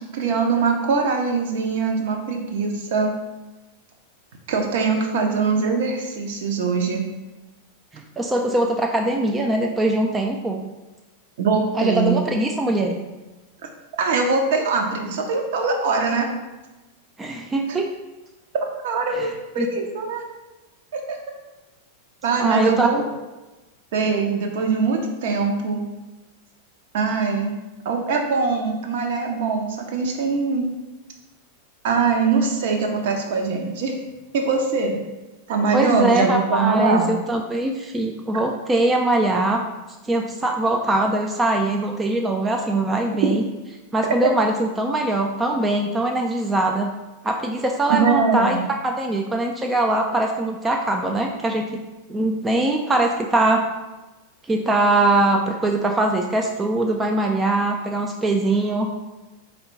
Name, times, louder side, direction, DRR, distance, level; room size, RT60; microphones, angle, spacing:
voice 1, 0.1-3.1 4.5-7.0 11.4-12.2 14.0-16.3 17.7-17.8 18.6-20.2 20.9-21.2 22.2-23.0 23.9-25.8 26.9-27.6 27.8-30.7 31.8-34.0 34.3-35.0 35.5-37.1 47.9-48.7, right 4 dB, 55° right, 2 dB, 0.6 m, -22 dB
voice 2, 7.9-10.6 11.7-13.0 17.2-17.9 19.1-19.3 19.6-19.7 22.4-22.9 35.7-39.6 40.0-43.4 43.9-46.9 47.2-48.6 48.8-51.8 52.1-53.6 54.5-58.9, right 2 dB, 15° right, 2 dB, 0.3 m, -22 dB
4.3 x 2.2 x 3.9 m, 1.1 s
figure-of-eight pair, 90°, 0 cm